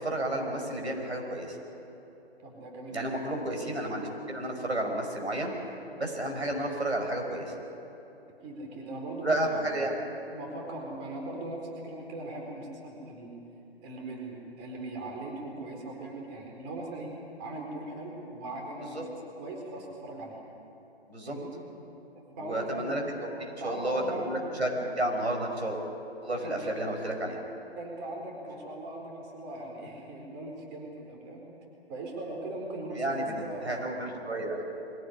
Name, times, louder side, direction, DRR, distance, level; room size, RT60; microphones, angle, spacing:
voice 1, 0.0-1.6 2.9-5.5 6.0-7.5 9.2-9.9 19.0-19.1 21.1-21.3 22.4-23.0 23.4-25.8 26.2-27.4 32.9-34.6, right 1 dB, 85° right, 2 dB, 5.6 m, -31 dB
voice 2, 2.4-3.4 8.4-9.7 10.3-13.4 13.8-17.1 17.4-20.4 21.3-21.6 22.4-23.1 23.6-24.5 26.3-26.7 27.8-31.5 31.9-34.1, right 2 dB, 25° right, 0 dB, 4.4 m, -39 dB
23.0 x 17.0 x 9.8 m, 3.0 s
figure-of-eight pair, 140°, 32 cm